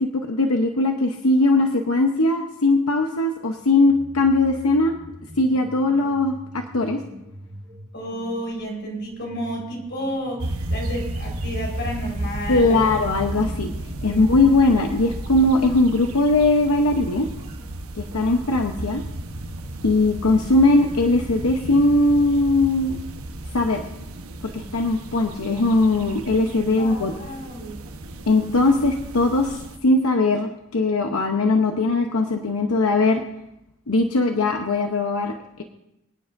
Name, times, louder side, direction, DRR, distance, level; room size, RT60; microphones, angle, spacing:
voice 1, 0.0-5.0 5.4-7.0 12.5-13.7 14.0-17.3 18.0-19.0 19.8-23.0 23.5-23.8 24.4-27.1 28.3-33.2 33.9-35.3, left 2 dB, 85° left, 4 dB, 0.9 m, -20 dB
sound 1, 3.8-17.6, equal, 30° right, 4.2 m, -44 dB
voice 2, 7.9-12.9 14.1-14.4 26.8-27.9, equal, 55° left, -1 dB, 4.4 m, -31 dB
sound 2, 10.4-29.8, right 1 dB, 90° right, 1.1 m, -33 dB
25.0 x 9.7 x 2.6 m, 0.84 s
head